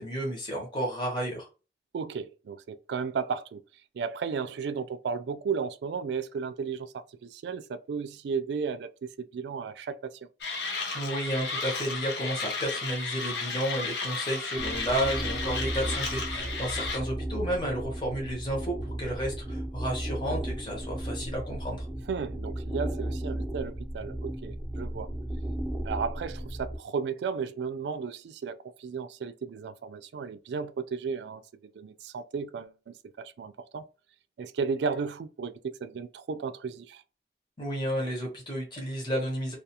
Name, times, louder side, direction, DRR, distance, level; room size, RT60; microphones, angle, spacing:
voice 1, 0.0-1.5 10.9-21.9 37.6-39.5, equal, 25° left, 0.9 m, -32 dB
voice 2, 1.9-3.6 3.9-8.9 9.3-10.3 16.3-16.5 22.1-25.1 25.8-33.8 34.4-37.0, right 5 dB, 80° right, 0.3 m, -34 dB
Mechanisms, 10.4-17.0, left 4 dB, 80° left, 0.6 m, -33 dB
sound 1, 14.6-26.8, right 1 dB, 5° right, 0.5 m, -35 dB
2.3 x 2.3 x 2.8 m
head